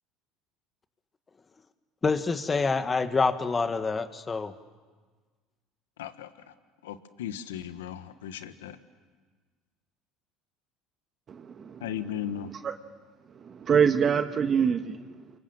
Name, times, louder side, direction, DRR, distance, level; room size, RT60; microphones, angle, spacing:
voice 1, 2.0-4.5, left 4 dB, 25° left, 9 dB, 1.8 m, -26 dB
voice 2, 6.0-6.3 6.8-8.8 11.8-12.5, left 10 dB, 85° left, 11 dB, 1.4 m, -36 dB
voice 3, 11.3-12.7 13.3-15.3, right 7 dB, 40° right, 8 dB, 1.4 m, -27 dB
29.5 x 25.5 x 7.6 m, 1.4 s
hypercardioid pair, 80°, 0 cm